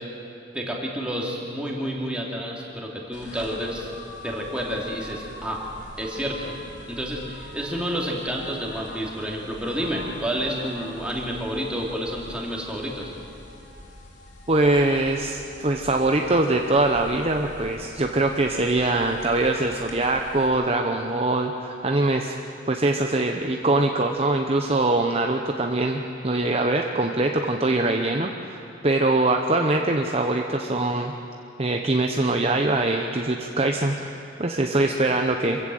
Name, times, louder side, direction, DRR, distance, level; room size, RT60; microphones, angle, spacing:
voice 1, 0.5-3.9 4.2-5.6 6.0-13.1, equal, 5° right, -2 dB, 3.0 m, -30 dB
sound 1, 3.1-20.5, left 1 dB, 75° left, 3.5 m, -43 dB
voice 2, 14.5-22.3 22.7-31.1 31.6-34.1 34.4-35.6, right 2 dB, 30° right, 3 dB, 0.9 m, -23 dB
26.5 x 15.5 x 7.8 m, 2.8 s
head